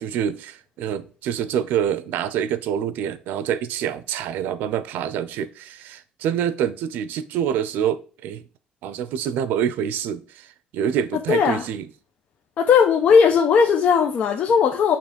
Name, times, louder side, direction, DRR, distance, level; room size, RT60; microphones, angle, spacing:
voice 1, 0.0-8.4 8.8-11.9, right 9 dB, 85° right, 0.6 m, -26 dB
voice 2, 11.3-11.6 12.6-15.0, left 6 dB, 60° left, 0.9 m, -17 dB
7.0 x 3.1 x 5.1 m
cardioid pair, 125°, 3 cm